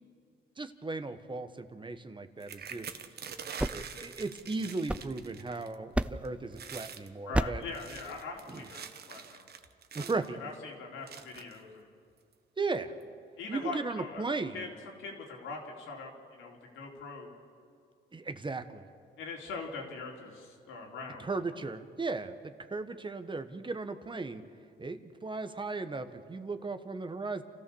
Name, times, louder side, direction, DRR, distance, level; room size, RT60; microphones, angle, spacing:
voice 1, 0.6-2.9 3.7-7.6 8.5-8.6 9.9-10.4 12.6-12.9 13.5-14.7 18.1-18.8 21.2-24.4 24.8-27.4, right 3 dB, 25° right, 9 dB, 1.2 m, -36 dB
sound 1, 2.4-5.7 6.0-6.3 6.5-7.1 7.6-10.3 11.1-11.6 12.3-12.4 12.7-13.0, right 7 dB, 55° right, 1.3 m, -45 dB
sound 2, 3.3-5.5 5.9-6.4 7.3-7.8, right 1 dB, 5° right, 0.5 m, -33 dB
voice 2, 7.3-9.5 10.4-11.9 13.4-14.2 14.5-14.7 15.0-17.3 19.2-21.3, left 4 dB, 85° left, -1 dB, 3.8 m, -42 dB
29.0 x 14.5 x 7.1 m, 2.2 s
cardioid pair, 90°, 20 cm